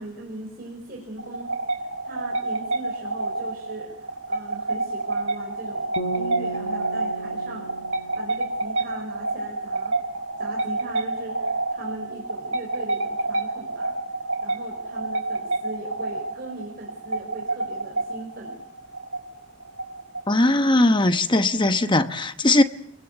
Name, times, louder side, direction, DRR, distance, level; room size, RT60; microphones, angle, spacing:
voice 1, 0.0-9.9 10.4-13.9 14.4-18.6, right 2 dB, 45° right, 4.8 m, -40 dB
sound 1, 1.2-20.6, right 2 dB, 75° right, 3.2 m, -29 dB
sound 2, 6.0-9.1, right 2 dB, 85° left, 1.9 m, -35 dB
voice 2, 20.3-22.6, left 2 dB, 20° left, 1.0 m, -19 dB
28.0 x 21.0 x 8.1 m
head